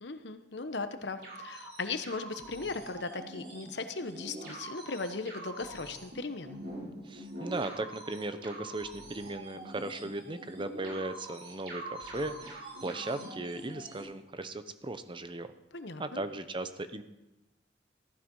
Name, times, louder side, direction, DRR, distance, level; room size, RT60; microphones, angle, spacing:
voice 1, 0.0-6.6 15.7-16.2, left 3 dB, 75° left, 9 dB, 1.1 m, -38 dB
sound 1, 1.2-14.0, right 2 dB, 60° right, 5.3 m, -45 dB
voice 2, 7.1-15.5 16.0-17.0, right 2 dB, 30° right, 11 dB, 0.8 m, -37 dB
14.5 x 12.0 x 5.5 m, 1.0 s
head